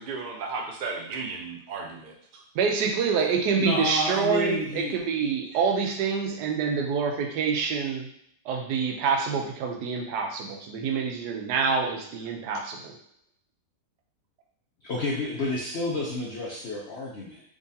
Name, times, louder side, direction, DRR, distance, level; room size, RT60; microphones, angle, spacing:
voice 1, 0.0-2.4, right 4 dB, 65° right, 0 dB, 0.5 m, -35 dB
voice 2, 2.5-8.1 8.5-12.9, right 5 dB, 85° right, 2 dB, 1.2 m, -26 dB
voice 3, 3.6-5.0 14.8-17.4, left 2 dB, 60° left, -4 dB, 0.7 m, -30 dB
3.7 x 3.1 x 2.7 m, 0.69 s
omnidirectional pair, 1.7 m